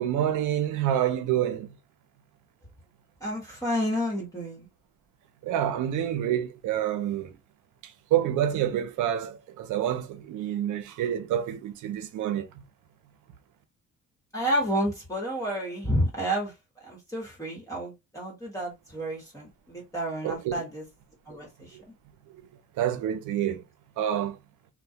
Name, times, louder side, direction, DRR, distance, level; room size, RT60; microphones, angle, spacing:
voice 1, 0.0-1.7 5.4-7.3 8.1-12.5 20.2-20.5 22.8-23.6 24.0-24.4, right 10 dB, 80° right, 0.6 m, -27 dB
voice 2, 3.2-4.7 14.3-20.8 21.3-21.8, equal, 10° left, 1.1 m, -30 dB
2.3 x 2.1 x 2.7 m
cardioid pair, 90°, 30 cm